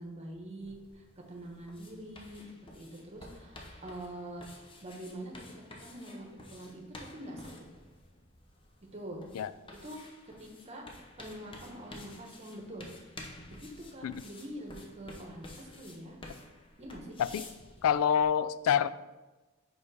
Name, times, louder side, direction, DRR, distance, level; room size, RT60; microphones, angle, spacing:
voice 1, 0.0-5.3 5.8-6.8 7.1-7.5 8.9-9.2 9.8-10.0 10.2-10.8 11.2-12.9 13.5-16.2 16.8-17.2, right 1 dB, 30° right, 1 dB, 1.1 m, -45 dB
sound 1, 0.6-18.3, left 2 dB, 25° left, 0.7 m, -52 dB
voice 2, 17.8-18.9, left 8 dB, 90° left, 17 dB, 0.3 m, -26 dB
5.2 x 4.8 x 4.7 m, 1.2 s
head